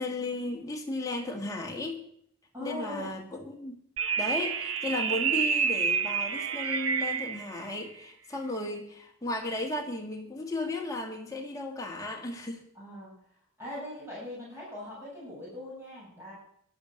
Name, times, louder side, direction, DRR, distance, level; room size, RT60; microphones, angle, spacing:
voice 1, 0.0-2.0 2.6-3.8 4.2-12.7, left 2 dB, 15° left, 1 dB, 1.9 m, -35 dB
voice 2, 2.5-3.1 12.7-13.1 13.6-16.3, left 1 dB, 10° right, -6 dB, 7.4 m, -40 dB
sound 1, 4.0-7.5, right 6 dB, 65° right, 1.0 m, -28 dB
12.5 x 11.5 x 6.6 m, 0.70 s
head